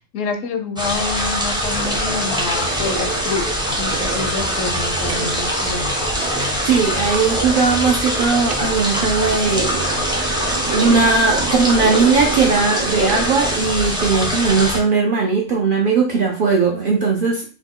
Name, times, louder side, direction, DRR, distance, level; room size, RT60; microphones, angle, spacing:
voice 1, 0.1-3.4 3.8-5.9, left 4 dB, 80° left, 6 dB, 1.0 m, -27 dB
sound 1, 0.8-14.8, equal, 5° right, 0.3 m, -23 dB
sound 2, 1.7-13.7, right 7 dB, 90° right, 1.0 m, -30 dB
voice 2, 6.7-9.7 10.7-17.4, right 4 dB, 65° right, 1 dB, 0.5 m, -18 dB
2.8 x 2.3 x 3.5 m, 0.38 s
omnidirectional pair, 1.3 m